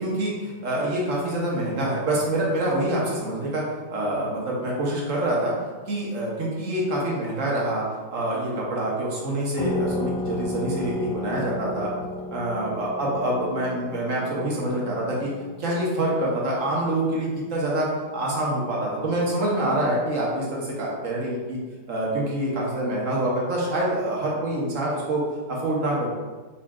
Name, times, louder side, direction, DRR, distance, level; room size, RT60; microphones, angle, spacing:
voice 1, 0.0-3.6 3.9-5.5 5.9-7.8 8.1-11.9 12.3-15.3 15.6-17.9 18.1-21.6 21.9-25.2 25.5-26.1, right 1 dB, 50° right, -4 dB, 1.1 m, -26 dB
sound 1, 9.6-18.8, left 1 dB, 70° left, 1.3 m, -34 dB
4.8 x 4.0 x 2.4 m, 1.3 s
omnidirectional pair, 2.1 m